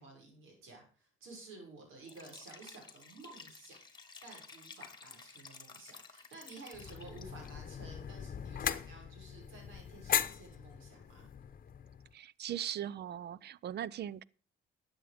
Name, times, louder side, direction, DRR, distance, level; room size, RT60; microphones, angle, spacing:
voice 1, 0.0-3.8 4.2-11.3, right 3 dB, 80° right, 6.2 m, -53 dB
Liquid, 2.0-7.5, left 4 dB, 20° left, 1.9 m, -53 dB
sound 1, 6.7-12.1, left 8 dB, 45° left, 1.0 m, -39 dB
voice 2, 12.1-14.2, right 10 dB, 55° right, 0.6 m, -39 dB
12.5 x 9.0 x 5.1 m
cardioid pair, 90°, 20 cm